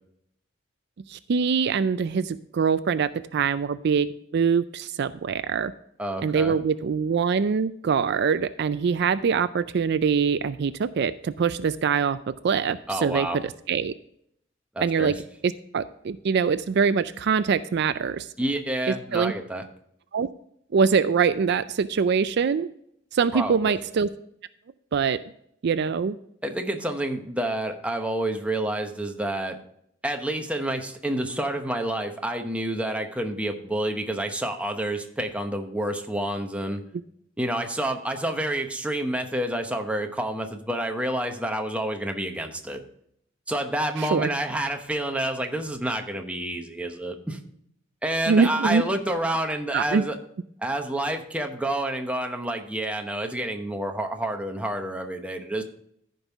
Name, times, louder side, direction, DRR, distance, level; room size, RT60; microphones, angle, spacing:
voice 1, 1.1-4.1 4.3-5.7 6.2-12.2 12.4-13.4 13.7-13.9 14.8-15.1 15.4-18.3 19.1-19.3 20.1-20.3 20.7-22.7 23.1-24.1 24.9-25.2 25.6-26.1 44.0-44.3 48.3-48.8 49.7-50.0, right 6 dB, 60° right, 13 dB, 0.4 m, -23 dB
voice 2, 6.0-6.6 12.9-13.4 14.7-15.2 18.4-19.6 23.3-23.7 26.4-29.6 30.0-36.8 37.4-42.8 43.5-47.4 48.0-50.2 50.6-55.6, right 1 dB, 5° right, 4 dB, 1.0 m, -28 dB
14.0 x 5.4 x 3.5 m, 0.71 s
head